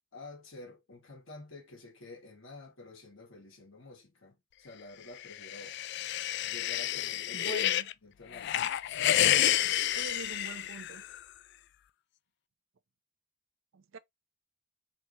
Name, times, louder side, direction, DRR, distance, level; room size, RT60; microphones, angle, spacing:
voice 1, 0.1-5.8 6.4-7.5 8.0-8.7, left 2 dB, 90° left, 2.4 m, -50 dB
sound 1, 5.2-7.9 8.3-11.2, left 12 dB, 60° left, 0.3 m, -29 dB
voice 2, 7.3-7.9 9.9-11.0 13.7-14.0, right 5 dB, 70° right, 0.5 m, -44 dB
4.4 x 3.2 x 3.1 m
head